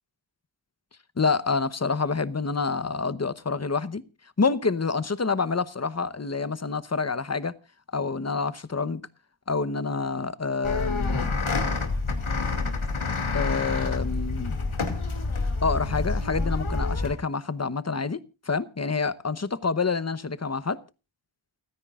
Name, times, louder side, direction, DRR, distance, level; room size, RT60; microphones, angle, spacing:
voice 1, 1.2-4.0 4.4-7.5 7.9-9.0 9.5-11.4 13.3-14.6 15.6-18.2 18.5-20.8, left 4 dB, 35° left, 0.9 m, -27 dB
sound 1, 10.6-17.1, left 3 dB, 80° left, 2.4 m, -27 dB
29.5 x 10.0 x 2.4 m
wide cardioid pair, 60°, 48 cm